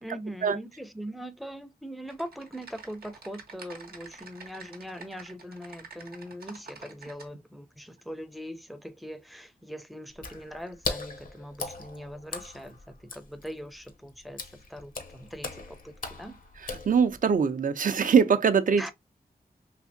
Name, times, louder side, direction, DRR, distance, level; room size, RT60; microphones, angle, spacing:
voice 1, 0.0-16.4 18.8-18.9, equal, ahead, 0.5 m, -41 dB
Typing, 2.1-7.3, right 4 dB, 85° right, 0.7 m, -48 dB
Water / Splash splatter, 10.1-17.4, left 4 dB, 65° left, 0.6 m, -39 dB
voice 2, 16.6-18.8, right 6 dB, 60° right, 0.4 m, -22 dB
3.3 x 2.8 x 2.5 m
wide cardioid pair, 75°, 16 cm